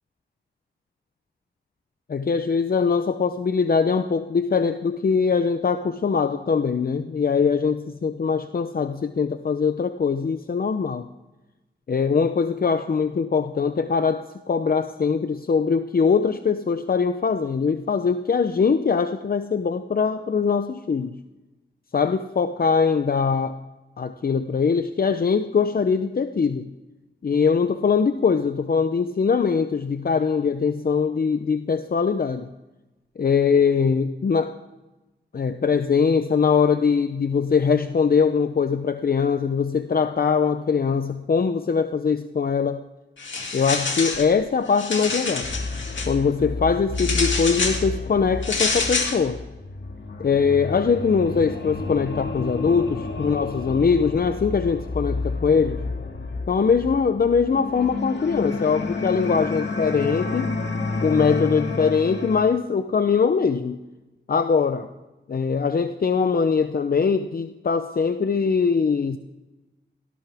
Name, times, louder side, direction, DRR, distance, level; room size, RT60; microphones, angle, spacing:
voice 1, 2.1-11.1 11.9-21.2 21.9-23.6 24.0-26.7 27.2-32.5 33.2-34.5 35.3-42.8 43.5-45.5 46.1-49.4 50.2-55.8 56.5-60.6 61.0-63.8 64.3-64.9 65.3-69.2, left 5 dB, 50° left, 9 dB, 0.7 m, -22 dB
sound 1, 43.2-44.3 44.7-46.1 47.0-47.8 48.4-49.2, left 4 dB, 85° left, 2.5 m, -26 dB
sound 2, 45.4-62.4, left 3 dB, 70° left, 2.1 m, -30 dB
18.5 x 17.5 x 3.5 m, 1.1 s
wide cardioid pair, 85°, 19 cm